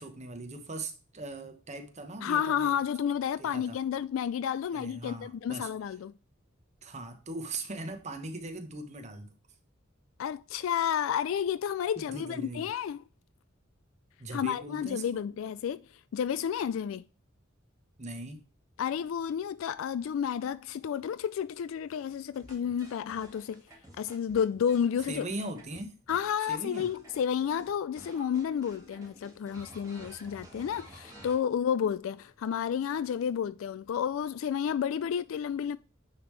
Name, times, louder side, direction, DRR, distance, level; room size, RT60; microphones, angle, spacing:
voice 1, 0.0-2.8 3.4-3.8 4.7-5.7 6.8-9.3 12.0-12.7 14.2-15.2 18.0-18.4 25.1-26.0 26.5-26.9, right 2 dB, 35° right, 1.1 m, -40 dB
voice 2, 2.2-6.1 10.2-13.0 14.3-15.8 16.1-17.0 18.8-23.6 24.0-25.2 26.1-35.8, left 8 dB, 75° left, 0.3 m, -31 dB
sound 1, 22.3-27.7 28.0-31.4, right 1 dB, 20° right, 1.8 m, -52 dB
9.5 x 3.6 x 3.2 m
head